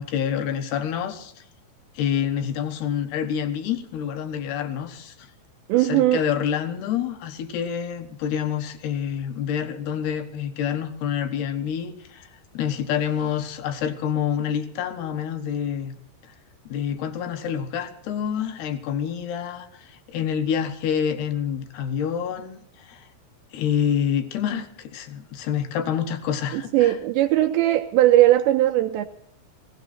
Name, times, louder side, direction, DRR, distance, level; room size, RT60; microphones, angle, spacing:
voice 1, 0.0-1.4 1.9-5.3 5.8-12.3 12.5-15.9 16.2-16.3 16.7-23.1 23.5-27.0, left 8 dB, 65° left, 2.9 m, -27 dB
voice 2, 5.7-6.2 26.5-29.1, right 14 dB, 85° right, 2.6 m, -19 dB
18.5 x 16.5 x 4.3 m
omnidirectional pair, 5.9 m